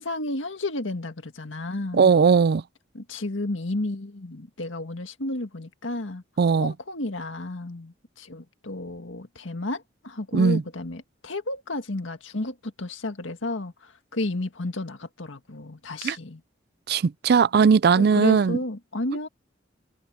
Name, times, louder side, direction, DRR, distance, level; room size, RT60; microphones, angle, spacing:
voice 1, 0.0-2.1 2.9-6.2 6.6-16.4 17.9-19.3, left 2 dB, 85° left, 1.8 m, -32 dB
voice 2, 1.9-2.6 6.4-6.7 10.3-10.6 16.0-16.2 16.9-18.6, right 5 dB, 55° right, 0.4 m, -18 dB
head